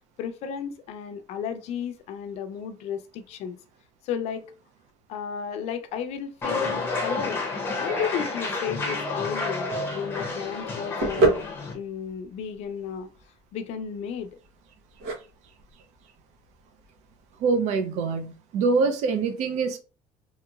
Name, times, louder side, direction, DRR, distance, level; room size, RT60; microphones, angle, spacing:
voice 1, 0.2-3.6 4.0-4.5 5.1-7.4 7.8-11.4 11.7-13.1 13.5-14.4, left 7 dB, 50° left, 0.5 m, -33 dB
sound 1, 6.4-11.7, left 3 dB, 15° left, 0.7 m, -30 dB
sound 2, 9.8-17.6, right 2 dB, 85° right, 1.0 m, -30 dB
voice 2, 17.4-19.8, right 4 dB, 55° right, 0.6 m, -24 dB
2.9 x 2.9 x 2.3 m
cardioid pair, 165°, 14 cm